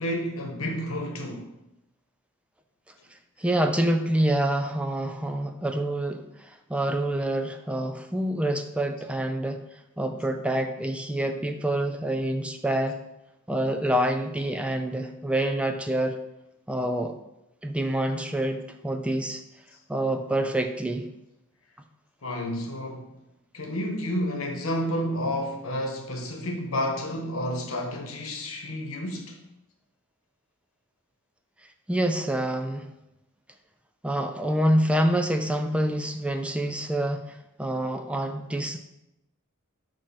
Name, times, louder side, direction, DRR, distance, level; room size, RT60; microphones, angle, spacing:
voice 1, 0.0-1.5 22.2-23.1 23.5-29.4, equal, 80° left, 1.1 m, -30 dB
voice 2, 3.4-9.6 10.0-13.0 13.5-16.2 16.7-17.1 17.6-19.4 19.9-21.1 31.9-32.9 34.0-38.8, right 1 dB, 5° right, 0.3 m, -27 dB
6.5 x 3.1 x 5.8 m
head